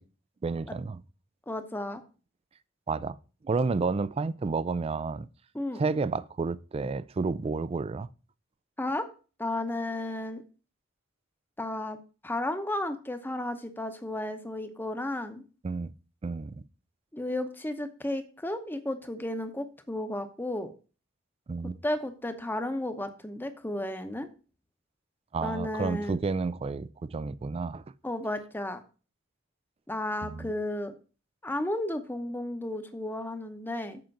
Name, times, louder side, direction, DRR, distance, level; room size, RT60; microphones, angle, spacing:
voice 1, 0.4-1.0 2.9-3.2 3.4-5.3 5.8-8.1 15.6-15.9 16.2-16.6 21.5-21.8 25.3-27.8 30.2-30.5, right 4 dB, 30° right, 0.3 m, -30 dB
voice 2, 1.5-2.0 5.5-5.8 8.8-9.1 9.4-10.4 11.6-12.0 12.2-15.4 17.1-20.7 21.8-24.3 25.4-26.2 28.0-28.8 29.9-30.9 31.4-34.0, left 1 dB, 10° left, 0.8 m, -33 dB
7.7 x 5.2 x 5.8 m
head